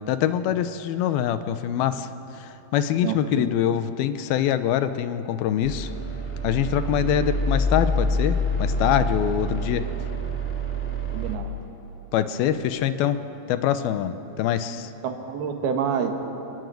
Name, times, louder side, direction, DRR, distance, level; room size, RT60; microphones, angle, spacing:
voice 1, 0.1-2.1 2.4-5.9 6.4-9.9 12.1-13.2 13.5-14.9, left 10 dB, 80° left, 11 dB, 2.6 m, -24 dB
voice 2, 3.0-3.4 11.1-11.6 15.0-16.1, right 7 dB, 80° right, 4 dB, 3.6 m, -27 dB
sound 1, 5.6-11.4, equal, 5° left, 1.2 m, -26 dB
29.0 x 14.5 x 9.3 m, 3.0 s
omnidirectional pair, 4.4 m